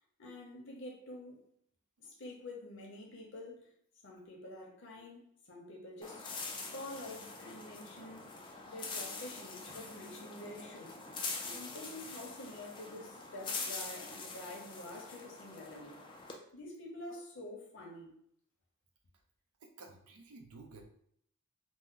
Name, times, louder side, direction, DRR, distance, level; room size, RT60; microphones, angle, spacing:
voice 1, 0.2-1.4 2.0-3.7 4.0-6.3 6.7-8.3 8.7-11.0 11.4-16.0 16.5-18.1, left 1 dB, 55° left, 0.8 m, -48 dB
sound 1, 6.0-16.4, left 4 dB, 20° left, 0.3 m, -44 dB
voice 2, 19.6-20.8, right 3 dB, 85° right, 0.6 m, -53 dB
3.0 x 2.1 x 3.6 m
head